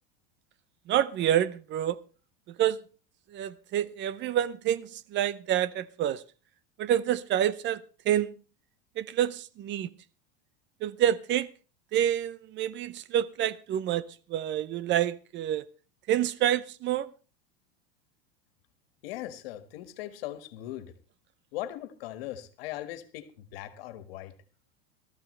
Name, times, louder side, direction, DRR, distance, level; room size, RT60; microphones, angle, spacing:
voice 1, 0.9-2.0 2.6-2.8 3.3-6.2 6.8-8.3 9.0-9.9 10.8-11.5 11.9-14.0 14.3-15.6 16.1-17.1, right 11 dB, 40° right, 0.7 m, -27 dB
voice 2, 19.0-20.9 21.5-24.3, left 13 dB, 75° left, 1.9 m, -39 dB
18.5 x 14.0 x 3.3 m
supercardioid pair, 120°, 30 cm